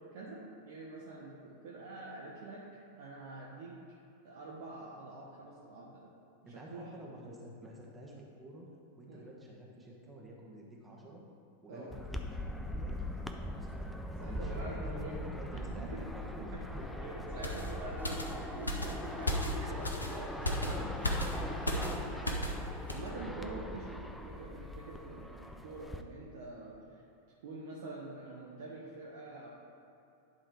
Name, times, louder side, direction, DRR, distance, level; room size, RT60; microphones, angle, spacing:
voice 1, 0.0-2.6 3.0-3.8 4.2-6.0 6.4-6.9 9.1-9.3 11.7-11.9 14.2-15.2 15.5-16.0 16.4-16.7 17.0-20.9 21.2-27.0 27.4-29.5, right 3 dB, 55° right, -3 dB, 0.9 m, -46 dB
voice 2, 6.4-8.7 9.0-11.2 11.6-13.8 14.1-17.1 20.4-21.5, right 1 dB, 15° right, -3 dB, 1.4 m, -49 dB
sound 1, 11.9-26.0, left 1 dB, 5° left, 0.5 m, -41 dB
sound 2, 17.4-22.6 22.9-23.1, left 1 dB, 80° left, 0.7 m, -35 dB
10.5 x 3.8 x 4.8 m, 2.8 s
figure-of-eight pair, 90°, 0 cm